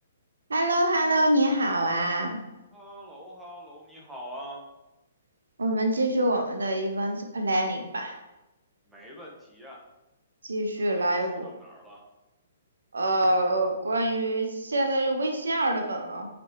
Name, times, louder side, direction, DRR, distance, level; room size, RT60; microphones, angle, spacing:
voice 1, 0.5-2.4 5.6-8.2 10.4-11.5 12.9-16.3, right 1 dB, 70° right, 4 dB, 1.0 m, -25 dB
voice 2, 2.7-4.6 8.9-9.8 10.9-12.0, equal, 5° right, -4 dB, 1.5 m, -44 dB
9.3 x 5.2 x 3.2 m, 0.99 s
figure-of-eight pair, 120°, 0 cm